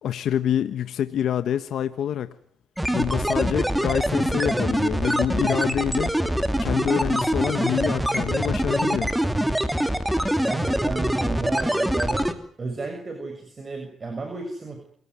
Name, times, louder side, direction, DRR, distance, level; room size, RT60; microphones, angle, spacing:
voice 1, 0.0-2.3 2.9-6.1 6.6-9.1, left 10 dB, 70° left, 1.3 m, -26 dB
sound 1, 2.8-12.3, equal, 5° right, 2.8 m, -24 dB
voice 2, 10.4-14.9, right 3 dB, 35° right, 6.6 m, -33 dB
28.0 x 17.5 x 9.6 m
cardioid pair, 90°, 0 cm